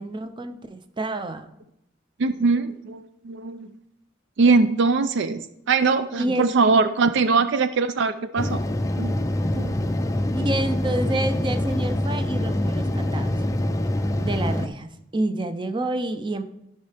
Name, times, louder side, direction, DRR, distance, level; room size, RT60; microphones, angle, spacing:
voice 1, 0.0-1.5 6.2-6.5 10.3-13.3 14.2-16.4, right 1 dB, 25° right, 9 dB, 0.6 m, -28 dB
voice 2, 2.2-3.7 4.4-8.6 9.0-9.2 9.5-9.9, right 4 dB, 65° right, 12 dB, 0.4 m, -22 dB
sound 1, 8.4-14.7, left 1 dB, 15° left, 0.4 m, -25 dB
13.5 x 5.6 x 3.4 m, 0.81 s
head